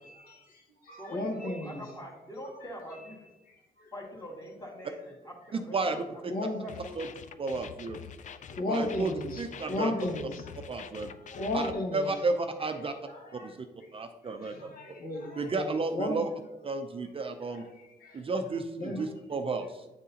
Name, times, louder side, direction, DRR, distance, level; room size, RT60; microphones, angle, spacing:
voice 1, 0.0-1.8 2.6-2.8 3.5-3.9 6.2-6.6 8.2-10.5 10.8-10.9 11.3-12.1 12.8-13.5 14.2-16.2 17.5-17.7 18.0-18.2 18.8-19.0, left 2 dB, 65° left, 1 dB, 1.3 m, -35 dB
voice 2, 1.0-3.3 3.9-5.8 6.1-7.0, equal, 25° left, -2 dB, 1.9 m, -44 dB
voice 3, 5.7-6.3 7.0-7.1 7.4-8.0 8.7-9.9 10.7-11.1 11.5-11.7 11.9-12.9 13.4-13.7 13.9-14.7 15.4-16.3 16.6-17.6 18.1-19.9, right 3 dB, 35° right, 6 dB, 0.5 m, -32 dB
sound 1, 6.7-11.7, left 8 dB, 50° left, 0.4 m, -46 dB
9.1 x 3.7 x 2.8 m, 1.1 s
cardioid pair, 95°, 16 cm